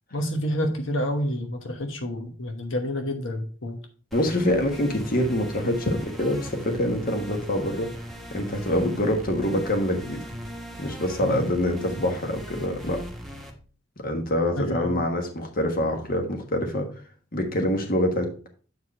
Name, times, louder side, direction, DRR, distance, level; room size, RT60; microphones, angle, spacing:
voice 1, 0.1-3.8 11.2-11.5 14.6-15.1, equal, 85° left, 4 dB, 1.1 m, -29 dB
voice 2, 4.1-7.9 8.3-10.2 10.8-13.0 14.0-16.9 17.3-18.3, left 1 dB, 50° left, 4 dB, 1.4 m, -25 dB
sound 1, 4.1-13.5, equal, ahead, 1.2 m, -39 dB
8.1 x 4.8 x 4.2 m, 0.40 s
head